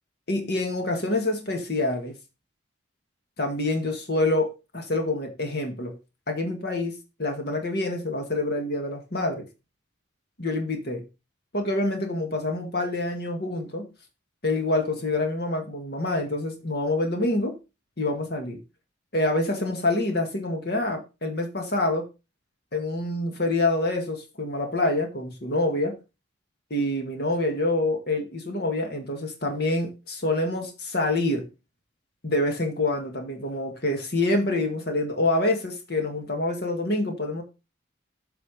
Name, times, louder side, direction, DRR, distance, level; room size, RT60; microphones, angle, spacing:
voice 1, 0.3-2.1 3.4-5.9 6.3-9.5 10.4-11.0 11.5-13.9 14.4-17.6 18.0-18.6 19.1-22.1 22.7-26.0 26.7-31.5 32.2-37.4, left 2 dB, 50° left, 1.9 m, -26 dB
8.0 x 4.9 x 4.9 m
head